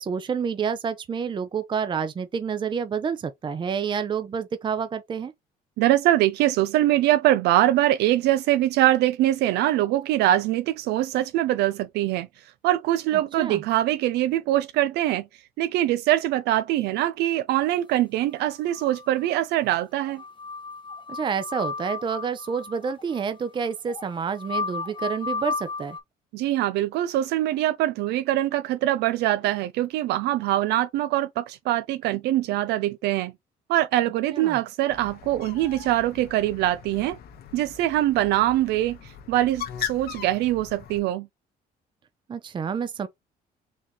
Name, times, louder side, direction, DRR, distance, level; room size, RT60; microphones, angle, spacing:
voice 1, 0.0-5.3 13.4-13.6 21.1-26.0 34.3-34.6 42.3-43.1, right 6 dB, 30° right, 0.6 m, -28 dB
voice 2, 5.8-15.3 15.6-20.2 26.3-33.3 33.7-37.2 37.5-41.3, right 14 dB, 80° right, 0.4 m, -23 dB
sound 1, 18.4-19.4 19.7-19.8 20.0-26.0, left 4 dB, 30° left, 0.8 m, -34 dB
Bird, 34.9-41.0, left 10 dB, 70° left, 1.0 m, -39 dB
4.1 x 3.5 x 2.9 m
cardioid pair, 110°, 17 cm